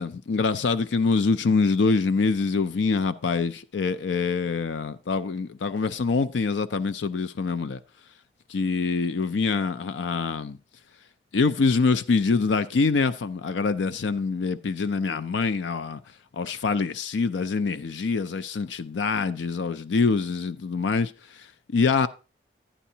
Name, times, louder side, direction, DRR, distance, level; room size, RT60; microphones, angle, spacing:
voice 1, 0.0-7.8 8.5-10.6 11.3-16.0 16.3-22.1, left 4 dB, 90° left, 0.4 m, -25 dB
11.0 x 10.0 x 2.8 m
head